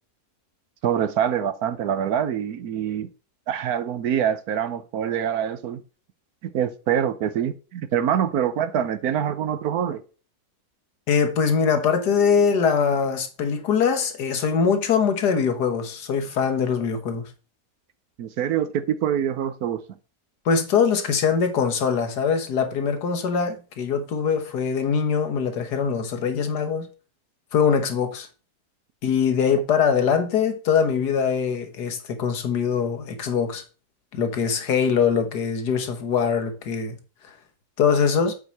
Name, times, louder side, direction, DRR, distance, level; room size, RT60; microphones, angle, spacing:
voice 1, 0.8-3.1 3.5-5.8 6.4-10.0 18.2-19.8, right 9 dB, 70° right, 1.2 m, -25 dB
voice 2, 11.1-17.3 20.4-26.9 27.5-28.3 29.0-33.6 34.1-37.0 37.8-38.3, left 6 dB, 80° left, 1.7 m, -22 dB
8.1 x 4.8 x 4.1 m
omnidirectional pair, 1.7 m